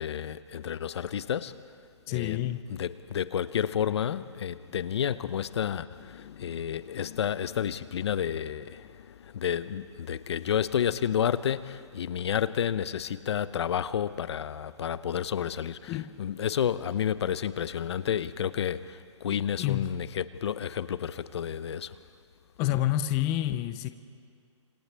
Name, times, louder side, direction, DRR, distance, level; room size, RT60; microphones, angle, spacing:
voice 1, 0.0-1.6 2.1-2.4 2.7-22.0, left 9 dB, 60° left, 15 dB, 0.7 m, -30 dB
voice 2, 2.1-2.7 15.9-16.1 19.3-20.0 22.6-23.9, left 13 dB, 20° left, 10 dB, 0.5 m, -29 dB
29.0 x 27.0 x 3.4 m, 2.2 s
hypercardioid pair, 155°, 16 cm